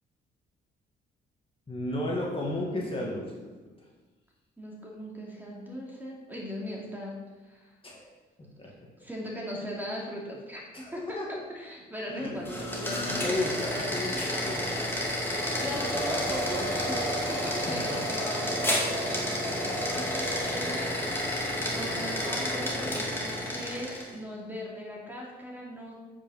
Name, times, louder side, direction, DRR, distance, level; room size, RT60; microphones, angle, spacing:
voice 1, 1.7-3.5 7.8-8.1 8.6-8.7 10.7-11.4 12.1-12.4 13.0-14.7 17.5-18.2, left 1 dB, 25° left, -3 dB, 2.0 m, -34 dB
voice 2, 4.6-7.7 9.0-14.1 14.3-14.7 15.1-17.0 17.3-25.9, equal, 10° right, -3 dB, 2.5 m, -39 dB
sound 1, 12.4-24.1, equal, 10° left, 2.2 m, -30 dB
8.5 x 5.4 x 5.6 m, 1.3 s
cardioid pair, 90°, 20 cm